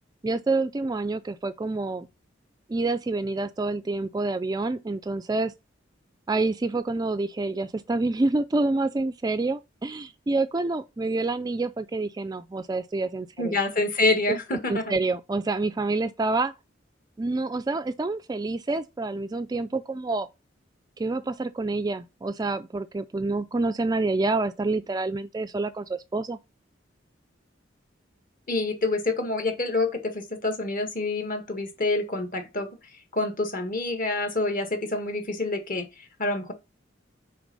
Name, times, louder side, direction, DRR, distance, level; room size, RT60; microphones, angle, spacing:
voice 1, 0.2-2.1 2.7-5.5 6.3-13.6 14.7-16.5 17.2-20.3 21.0-26.4, right 3 dB, 20° right, 0.3 m, -27 dB
voice 2, 13.4-14.8 28.5-32.7 33.1-36.5, left 2 dB, 45° left, 1.5 m, -27 dB
6.0 x 4.5 x 5.3 m
head